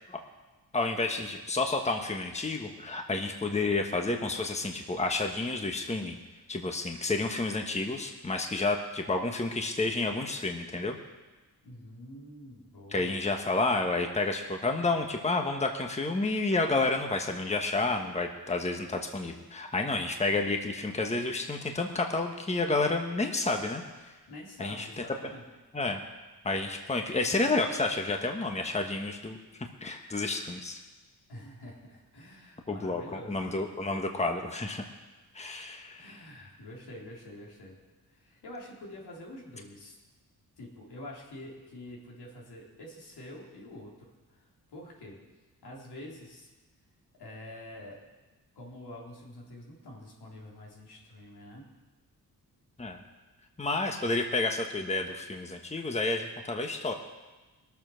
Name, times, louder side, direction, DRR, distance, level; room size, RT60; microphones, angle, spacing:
voice 1, 0.7-6.2 6.5-11.0 12.9-24.2 24.6-24.9 25.7-26.0 26.4-30.8 32.7-34.8 35.3-36.2 52.8-53.0 53.6-56.9, left 3 dB, 15° left, 4 dB, 1.2 m, -30 dB
voice 2, 11.6-13.1 24.3-25.4 31.3-33.4 36.0-37.8 38.1-40.0 40.6-45.2 45.6-46.5 47.2-48.0 48.5-51.7, left 1 dB, 85° left, -2 dB, 3.6 m, -46 dB
21.0 x 7.1 x 6.3 m, 1.2 s
cardioid pair, 95°, 38 cm